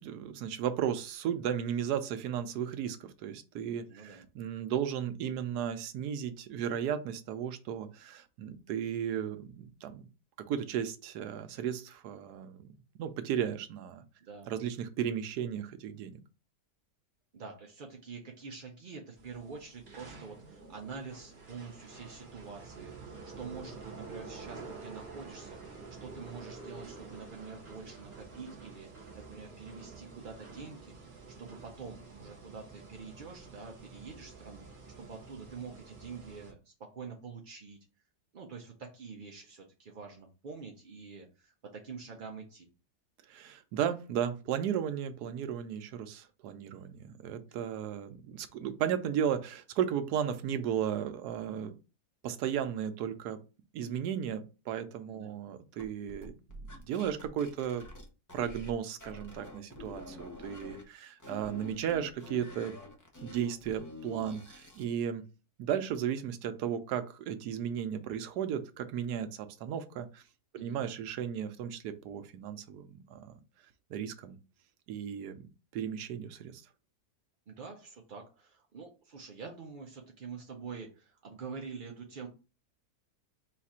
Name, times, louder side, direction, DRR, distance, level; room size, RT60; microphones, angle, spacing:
voice 1, 0.0-10.1 10.5-12.7 13.0-14.0 14.5-16.2 43.3-51.7 52.2-53.4 53.7-56.3 56.7-57.9 58.3-62.7 63.2-65.2 65.6-70.2 70.5-73.3 73.9-74.4 74.9-75.5 75.7-76.6, right 9 dB, 80° right, 9 dB, 1.2 m, -35 dB
voice 2, 3.9-4.2 14.2-14.5 17.3-34.7 35.0-37.8 38.3-42.7 55.1-55.4 70.6-70.8 77.5-82.3, right 5 dB, 60° right, 1 dB, 0.5 m, -46 dB
sound 1, 19.2-36.5, right 4 dB, 35° right, 1.1 m, -49 dB
sound 2, 55.8-58.7 59.0-60.8 61.2-64.9, left 1 dB, 20° left, 0.5 m, -47 dB
4.4 x 2.4 x 4.2 m, 0.31 s
omnidirectional pair, 1.7 m